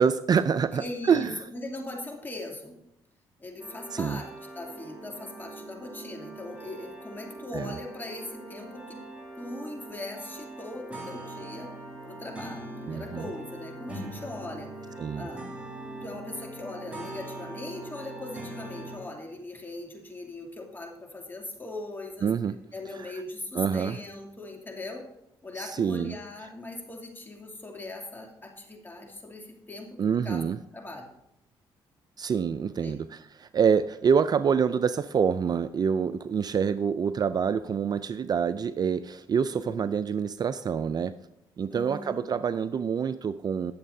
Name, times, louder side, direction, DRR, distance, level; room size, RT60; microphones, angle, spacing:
voice 1, 0.0-1.4 3.9-4.2 7.5-7.7 12.9-13.3 15.0-15.3 22.2-22.5 23.5-24.0 25.6-26.2 30.0-30.6 32.2-41.1 41.6-43.7, right 6 dB, 45° right, 13 dB, 0.4 m, -26 dB
voice 2, 0.7-2.8 3.4-9.0 9.4-11.7 12.0-15.5 16.0-22.3 22.7-25.0 25.4-30.4 30.7-31.1 32.6-33.0 39.6-39.9 41.7-42.3, left 2 dB, 20° left, 1 dB, 2.7 m, -40 dB
sound 1, 3.6-19.0, right 2 dB, 15° right, 4.3 m, -42 dB
20.0 x 7.3 x 2.7 m, 0.82 s
cardioid pair, 75°, 10 cm